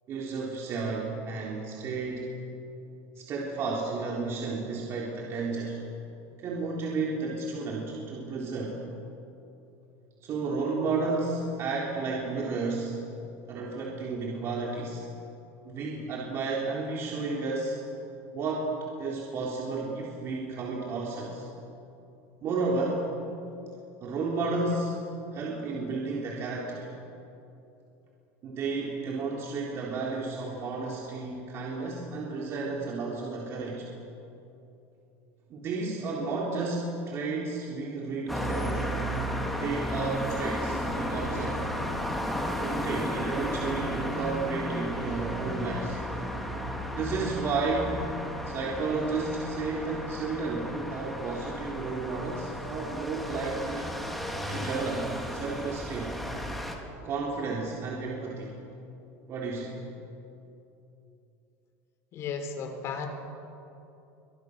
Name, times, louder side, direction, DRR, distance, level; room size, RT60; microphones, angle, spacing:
voice 1, 0.1-2.3 3.2-5.8 6.4-8.8 10.2-12.9 13.5-15.0 15.6-17.8 18.3-18.7 19.0-21.4 22.4-23.0 24.0-25.0 25.3-26.9 28.4-33.9 35.5-38.9 39.6-41.6 42.6-46.0 46.9-48.1 48.5-53.9 54.5-56.1 57.0-58.6 59.3-59.8, right 3 dB, 40° right, -3 dB, 3.9 m, -32 dB
sound 1, 38.3-56.8, equal, ahead, 3.2 m, -34 dB
voice 2, 62.1-63.1, left 6 dB, 40° left, 6 dB, 3.7 m, -34 dB
29.5 x 25.5 x 6.7 m, 2.8 s
supercardioid pair, 145°, 7 cm